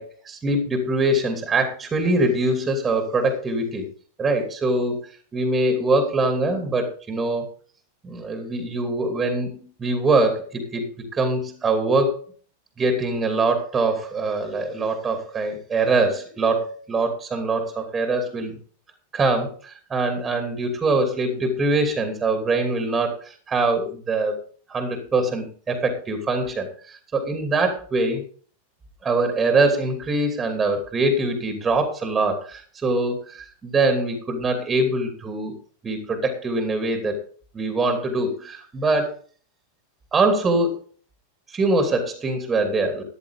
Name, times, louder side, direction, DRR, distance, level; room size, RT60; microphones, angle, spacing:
voice 1, 0.0-3.9 4.2-5.0 5.3-7.5 8.0-12.2 12.8-18.6 19.1-24.4 24.7-28.2 29.0-35.5 35.8-37.2 37.5-39.2 40.1-40.7 41.5-43.0, right 2 dB, 20° right, 5 dB, 2.8 m, -23 dB
14.0 x 10.5 x 3.6 m, 0.43 s
figure-of-eight pair, 90°, 0 cm